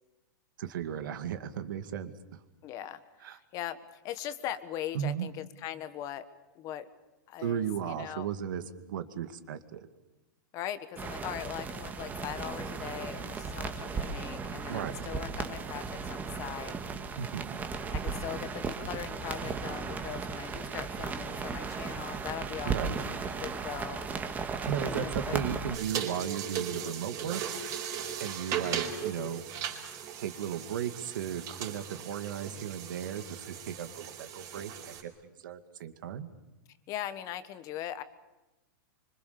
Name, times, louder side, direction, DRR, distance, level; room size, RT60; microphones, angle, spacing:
voice 1, 0.6-2.1 3.2-3.4 4.9-5.3 7.4-8.6 8.9-9.8 14.7-15.0 17.2-17.6 22.7-23.0 24.7-27.4 28.1-29.4 30.2-36.3, right 9 dB, 70° right, 9 dB, 2.3 m, -35 dB
voice 2, 2.6-6.3 6.5-6.9 7.3-8.3 10.5-16.8 17.9-24.1 24.8-25.4 36.9-38.0, left 11 dB, 30° left, 13 dB, 1.4 m, -40 dB
sound 1, 11.0-25.8, right 5 dB, 15° right, 1.8 m, -36 dB
sound 2, 25.7-35.0, right 8 dB, 30° right, 4.6 m, -38 dB
25.5 x 25.5 x 7.0 m, 1.0 s
hypercardioid pair, 150°, 11 cm